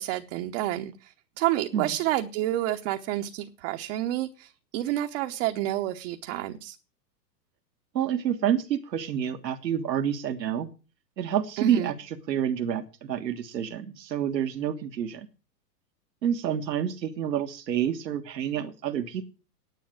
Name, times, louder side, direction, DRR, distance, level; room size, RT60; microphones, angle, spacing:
voice 1, 0.0-6.8 11.6-11.9, right 14 dB, 45° right, 1.1 m, -29 dB
voice 2, 7.9-10.7 11.2-15.3 16.2-19.2, right 9 dB, 80° right, 1.6 m, -28 dB
10.0 x 8.5 x 8.0 m
hypercardioid pair, 115°, 50 cm